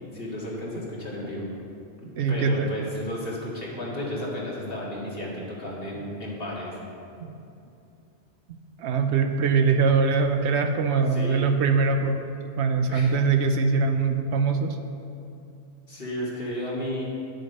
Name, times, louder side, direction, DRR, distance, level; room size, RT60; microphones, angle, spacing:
voice 1, 0.1-1.5 2.3-6.8 11.1-11.5 12.9-13.2 15.9-17.1, left 1 dB, 55° left, -5 dB, 2.1 m, -33 dB
voice 2, 2.2-2.7 7.2-7.3 8.8-12.2 12.6-14.8, right 5 dB, 75° right, 7 dB, 0.9 m, -22 dB
10.0 x 6.4 x 5.3 m, 2.7 s
omnidirectional pair, 1.2 m